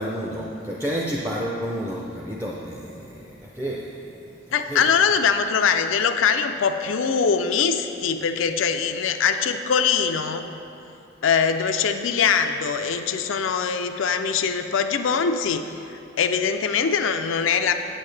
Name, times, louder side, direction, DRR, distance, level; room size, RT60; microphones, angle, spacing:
voice 1, 0.0-4.4 4.7-4.9, equal, 10° right, -3 dB, 0.5 m, -30 dB
voice 2, 4.5-10.4 11.2-17.7, left 6 dB, 85° left, 7 dB, 0.4 m, -22 dB
8.8 x 8.2 x 3.3 m, 2.7 s
head